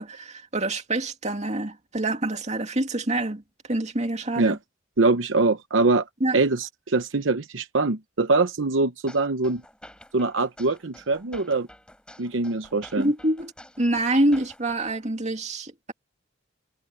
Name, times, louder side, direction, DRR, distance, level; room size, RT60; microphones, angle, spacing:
voice 1, 0.0-3.4 3.7-4.6 6.2-6.4 13.0-13.5 13.8-15.9, right 1 dB, 35° right, 2.2 m, -26 dB
voice 2, 5.0-6.1 6.3-9.6 10.1-11.7 12.2-13.1, right 3 dB, 75° right, 0.9 m, -23 dB
sound 1, 9.1-15.1, left 1 dB, 5° left, 5.7 m, -49 dB
head